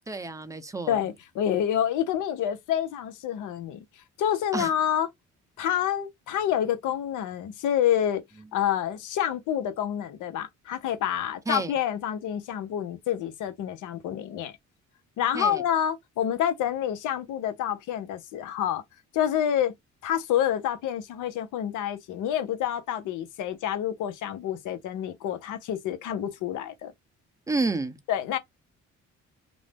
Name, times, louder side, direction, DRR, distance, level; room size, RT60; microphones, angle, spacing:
voice 1, 0.1-1.0 4.5-4.7 11.5-11.7 15.3-15.6 27.5-28.0, right 3 dB, 10° right, 0.6 m, -30 dB
voice 2, 0.9-3.8 4.2-5.1 5.6-8.2 8.5-14.6 15.2-18.8 19.1-19.7 20.0-26.9 28.1-28.4, left 10 dB, 85° left, 0.7 m, -28 dB
2.6 x 2.0 x 3.3 m
cardioid pair, 90°, 30 cm